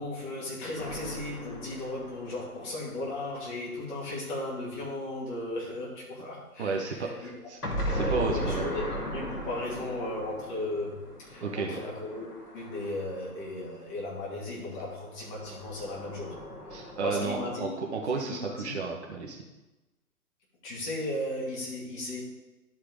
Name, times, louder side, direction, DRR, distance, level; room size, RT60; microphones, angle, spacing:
voice 1, 0.0-7.4 7.8-12.3 12.5-16.4 16.7-17.8 18.2-18.7 20.6-22.2, left 1 dB, 30° left, -5 dB, 2.9 m, -36 dB
sound 1, 0.8-3.6 7.6-13.9 15.1-17.6, equal, 80° left, 1.9 m, -37 dB
voice 2, 6.6-7.6 7.9-8.7 11.4-11.9 16.7-19.4, right 4 dB, 45° right, 1 dB, 1.3 m, -32 dB
12.0 x 4.8 x 3.7 m, 1.1 s
figure-of-eight pair, 125°, 45 cm